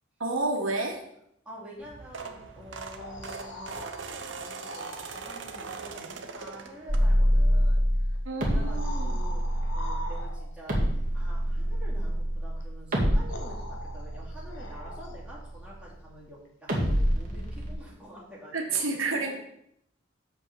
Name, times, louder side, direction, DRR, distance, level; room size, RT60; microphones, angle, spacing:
voice 1, 0.2-1.0 8.2-9.1 18.5-19.3, right 3 dB, 85° right, 1 dB, 1.6 m, -29 dB
voice 2, 1.4-8.2 8.4-10.8 11.1-19.3, equal, 5° right, -7 dB, 2.9 m, -47 dB
sound 1, 1.8-7.4 7.9-8.2 9.4-9.5 9.7-9.8 10.2-10.3, right 4 dB, 65° right, 0.9 m, -41 dB
sound 2, 2.7-5.3 7.2-7.3 8.5-10.7 12.6-12.7 13.3-15.4 18.5-18.6, left 1 dB, 70° left, 1.2 m, -43 dB
sound 3, 6.9-16.1 16.7-17.7, equal, 45° right, 2.2 m, -27 dB
6.9 x 5.4 x 6.9 m, 0.75 s
head